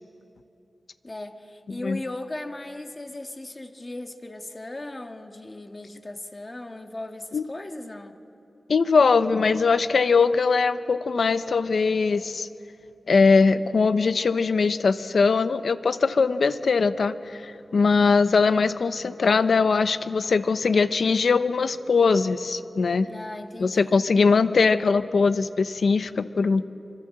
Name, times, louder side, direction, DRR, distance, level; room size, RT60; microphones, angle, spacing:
voice 1, 1.0-8.2 23.1-24.0, left 2 dB, 30° left, 5 dB, 1.8 m, -37 dB
voice 2, 8.7-12.5 13.1-23.1 23.6-26.7, left 4 dB, 80° left, 11 dB, 0.9 m, -21 dB
25.5 x 25.0 x 7.8 m, 2.8 s
wide cardioid pair, 65°, 0 cm